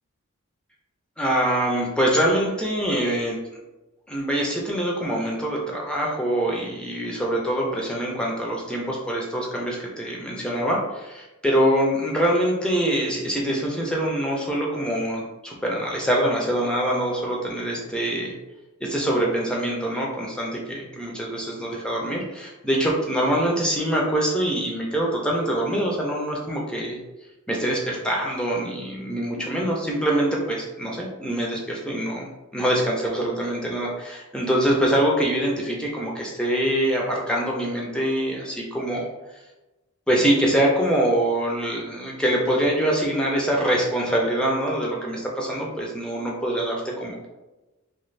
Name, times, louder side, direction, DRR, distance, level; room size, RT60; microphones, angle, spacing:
voice 1, 1.2-3.4 4.1-18.4 18.8-27.0 27.5-39.1 40.1-47.3, right 1 dB, 5° left, -2 dB, 0.4 m, -24 dB
2.5 x 2.3 x 3.1 m, 1.1 s
head